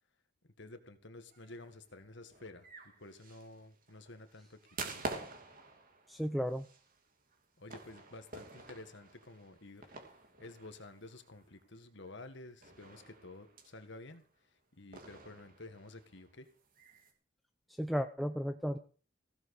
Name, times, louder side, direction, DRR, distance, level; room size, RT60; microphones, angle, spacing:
voice 1, 0.6-2.7 3.0-5.1 7.6-10.0 10.4-14.2 14.7-16.5, left 2 dB, 55° left, 8 dB, 1.7 m, -51 dB
sound 1, 1.3-11.7 12.1-12.2 12.6-14.2 14.9-17.1, right 3 dB, 40° right, 2.7 m, -49 dB
voice 2, 6.1-6.6 17.8-18.8, equal, ahead, 7 dB, 0.5 m, -34 dB
16.5 x 7.2 x 6.5 m, 0.40 s
head